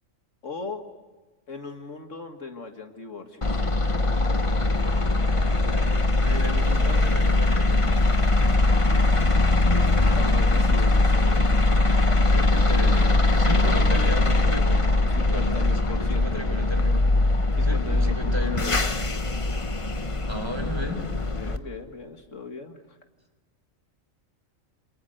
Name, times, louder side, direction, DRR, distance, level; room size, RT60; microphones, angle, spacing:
voice 1, 0.4-0.9 1.5-3.6 10.0-12.2 15.1-16.5 17.6-18.9 21.4-23.0, left 4 dB, 65° left, 6 dB, 2.2 m, -38 dB
sound 1, 3.4-21.6, left 2 dB, 25° left, 1.2 m, -21 dB
voice 2, 5.6-5.9 6.2-8.0 12.3-17.0 17.6-18.6 20.3-21.1, equal, 20° right, 6 dB, 4.0 m, -34 dB
28.5 x 27.0 x 7.9 m, 1.2 s
omnidirectional pair, 1.4 m